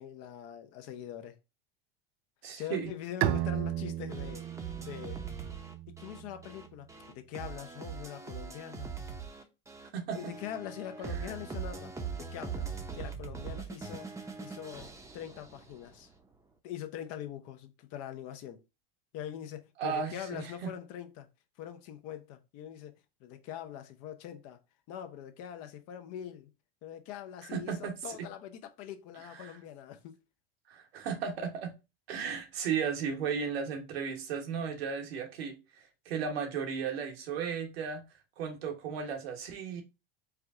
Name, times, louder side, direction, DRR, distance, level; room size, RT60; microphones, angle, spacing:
voice 1, 0.0-1.4 2.5-4.5 4.8-5.2 5.9-8.9 10.1-14.1 14.4-16.1 16.6-18.6 19.1-21.3 21.6-23.0 23.2-24.6 24.9-26.5 26.8-30.1, left 10 dB, 55° left, 0.8 m, -43 dB
voice 2, 2.4-2.9 9.9-10.3 19.8-20.7 27.5-27.9 28.2-28.3 29.3-29.5 30.7-31.7 32.1-35.6 36.0-38.0 38.4-39.8, right 6 dB, 85° right, 1.3 m, -35 dB
Bowed string instrument, 3.2-6.7, right 13 dB, 45° right, 0.4 m, -35 dB
sound 1, 4.1-16.0, right 5 dB, 10° right, 0.7 m, -42 dB
4.7 x 2.3 x 3.7 m
supercardioid pair, 110°, 30 cm